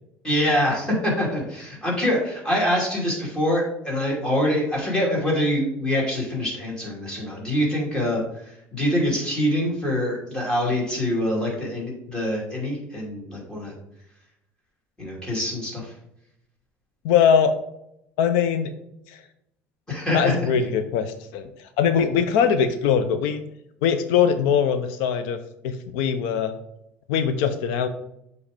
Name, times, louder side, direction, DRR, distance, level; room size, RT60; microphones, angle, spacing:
voice 1, 0.2-13.7 15.0-15.9 19.9-20.3, left 1 dB, 15° left, -3 dB, 2.7 m, -25 dB
voice 2, 17.0-17.5 18.2-18.7 19.1-19.2 20.1-23.4 23.8-25.4 25.6-26.5 27.1-27.9, left 7 dB, 90° left, 9 dB, 0.6 m, -21 dB
7.3 x 3.2 x 5.0 m, 0.79 s
cardioid pair, 130°, 5 cm